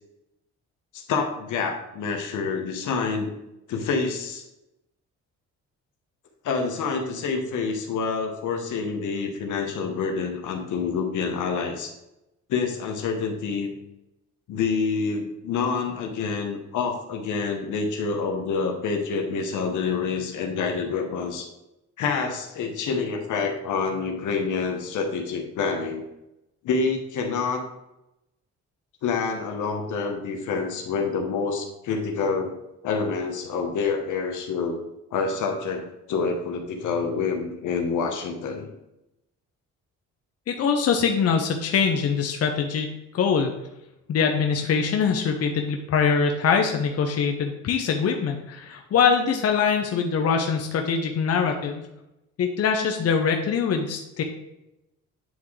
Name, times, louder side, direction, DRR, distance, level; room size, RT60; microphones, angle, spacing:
voice 1, 0.9-3.3 3.7-4.4 6.4-11.9 12.5-13.7 14.5-21.5 22.0-26.0 26.6-27.6 29.0-32.5 32.8-34.8 35.1-38.7, left 5 dB, 80° left, 3 dB, 1.2 m, -27 dB
voice 2, 40.5-43.5 44.1-51.8 52.4-54.2, left 6 dB, 55° left, 4 dB, 0.8 m, -23 dB
9.3 x 3.6 x 3.2 m, 0.90 s
cardioid pair, 90°, 30 cm